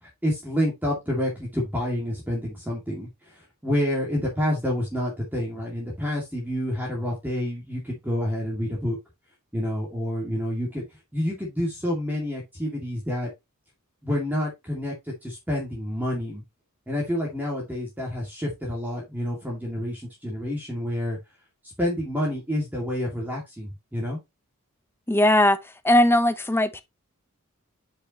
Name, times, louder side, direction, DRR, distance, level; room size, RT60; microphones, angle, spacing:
voice 1, 0.0-9.0 9.5-10.8 11.1-13.3 14.0-16.4 16.9-21.2 21.6-24.2, left 1 dB, 10° right, 2.3 m, -28 dB
voice 2, 25.1-25.6 25.8-26.8, left 1 dB, 10° left, 0.7 m, -19 dB
8.5 x 5.4 x 3.0 m
head